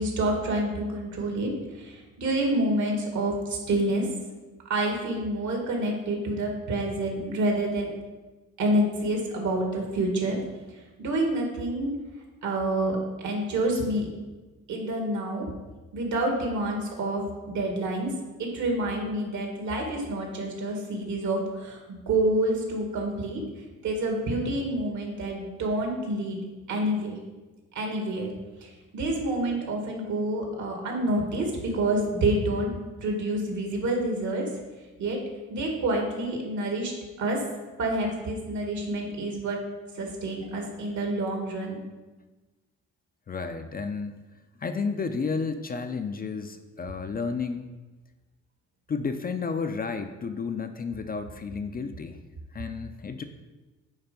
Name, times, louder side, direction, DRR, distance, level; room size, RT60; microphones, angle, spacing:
voice 1, 0.0-1.5 1.8-4.1 4.7-7.9 8.6-10.4 11.0-11.9 12.4-13.0 13.2-14.1 14.7-15.5 15.9-18.1 18.4-23.4 23.8-26.4 26.7-27.2 27.7-28.3 28.6-32.7 33.0-34.4 35.0-35.2 35.5-36.9 37.2-37.4 37.8-39.6 40.0-41.8, right 1 dB, 70° right, 1 dB, 2.0 m, -28 dB
voice 2, 43.3-44.2 44.6-47.6 48.9-52.2 52.5-53.2, left 5 dB, 30° left, 8 dB, 0.5 m, -32 dB
8.8 x 3.3 x 5.3 m, 1.2 s
cardioid pair, 90°, 30 cm